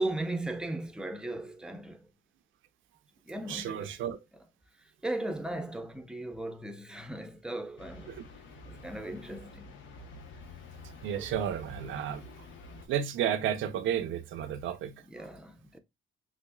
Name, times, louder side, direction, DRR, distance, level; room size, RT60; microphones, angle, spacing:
voice 1, 0.0-2.1 3.2-3.9 4.8-8.1 8.7-9.7 11.1-11.3 15.1-15.8, right 2 dB, 5° right, 0.6 m, -37 dB
voice 2, 3.5-4.2 11.0-12.3 12.9-14.9, right 9 dB, 75° right, 0.6 m, -32 dB
sound 1, 7.8-12.9, left 2 dB, 75° left, 0.9 m, -48 dB
6.0 x 2.1 x 2.3 m
cardioid pair, 90°, 20 cm